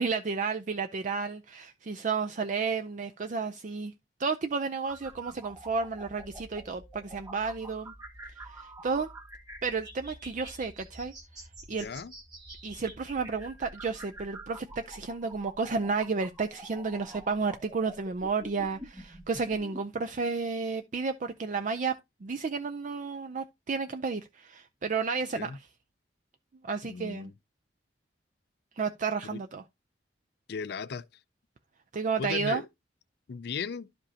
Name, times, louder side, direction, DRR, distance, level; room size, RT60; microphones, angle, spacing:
voice 1, 0.0-3.9 4.2-7.9 8.4-9.1 9.6-11.1 11.7-11.9 12.6-21.9 22.2-25.7 26.6-27.3 28.8-29.6 31.9-32.6, right 4 dB, 45° right, 0.5 m, -32 dB
sound 1, 4.8-19.8, right 1 dB, 20° right, 2.0 m, -47 dB
voice 2, 11.7-12.1 25.3-25.6 26.8-27.3 29.3-29.4 30.5-31.0 32.2-32.7 33.3-33.9, left 5 dB, 65° left, 0.4 m, -36 dB
11.5 x 5.2 x 2.8 m
head